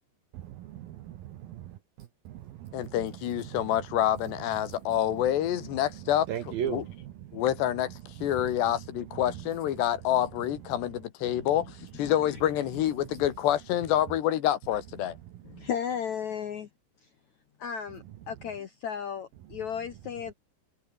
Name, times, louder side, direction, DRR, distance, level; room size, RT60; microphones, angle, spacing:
voice 1, 0.3-4.0 4.6-4.8 5.1-7.7 8.0-10.2 10.7-10.8 11.2-11.5 13.0-13.1 15.2-15.7 19.6-19.7, right 12 dB, 70° right, 2.4 m, -41 dB
voice 2, 2.7-6.3 6.6-6.8 7.3-15.2, left 12 dB, 65° left, 3.4 m, -27 dB
voice 3, 12.0-12.4 15.4-16.7 17.6-20.3, left 8 dB, 90° left, 1.6 m, -35 dB
omnidirectional pair, 5.7 m